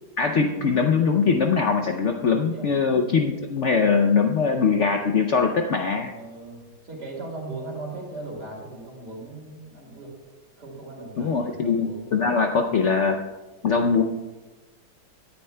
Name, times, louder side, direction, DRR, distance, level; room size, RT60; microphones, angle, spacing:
voice 1, 0.2-6.1 11.2-13.2 13.6-14.0, left 5 dB, 65° left, 4 dB, 0.7 m, -22 dB
voice 2, 6.1-10.1 10.6-12.5, right 2 dB, 70° right, -1 dB, 3.2 m, -38 dB
17.5 x 10.0 x 2.2 m, 1.2 s
omnidirectional pair, 1.8 m